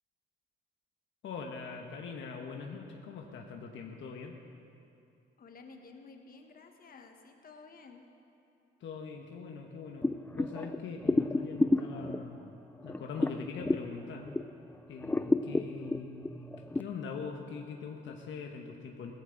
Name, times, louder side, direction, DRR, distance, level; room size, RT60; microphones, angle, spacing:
voice 1, 1.2-4.4 8.8-10.1 10.4-12.5 12.8-14.3 14.9-16.5 16.7-19.1, left 5 dB, 75° left, 1 dB, 1.2 m, -42 dB
voice 2, 5.4-8.0, left 4 dB, 45° left, 4 dB, 1.5 m, -52 dB
sound 1, 10.0-14.6 15.0-16.8, left 2 dB, 10° left, 0.4 m, -31 dB
16.5 x 14.5 x 4.0 m, 2.6 s
cardioid pair, 90°, 20 cm